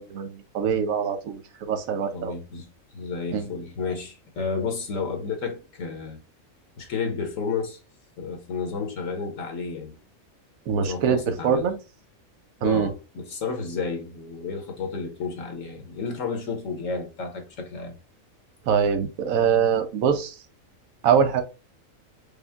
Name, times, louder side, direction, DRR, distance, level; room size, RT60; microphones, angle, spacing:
voice 1, 0.0-2.3 3.3-3.5 10.7-11.8 12.6-12.9 18.7-20.3 21.0-21.4, right 7 dB, 85° right, 1.1 m, -23 dB
voice 2, 2.1-6.2 6.8-7.8 8.2-10.0 10.8-11.7 12.6-17.9, left 5 dB, 70° left, 1.4 m, -31 dB
5.3 x 2.2 x 3.4 m
omnidirectional pair, 1.4 m